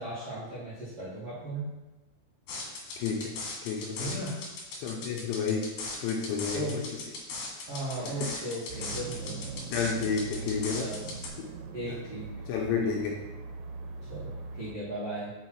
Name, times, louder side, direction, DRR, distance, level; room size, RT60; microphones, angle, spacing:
voice 1, 0.0-1.7 4.0-4.4 6.5-6.8 7.7-9.4 10.8-11.1 11.7-12.3 14.1-15.3, right 1 dB, 70° right, -9 dB, 1.4 m, -36 dB
sound 1, 2.5-11.3, left 3 dB, 65° left, 2.7 m, -39 dB
voice 2, 3.0-3.3 3.6-4.1 4.8-5.7 6.0-6.9 9.7-10.9 11.4-11.5 12.5-13.2, left 5 dB, 80° left, 0 dB, 2.8 m, -30 dB
sound 2, 8.7-14.7, right 4 dB, 90° right, 3.3 m, -41 dB
6.8 x 5.6 x 4.5 m, 1.1 s
omnidirectional pair, 6.0 m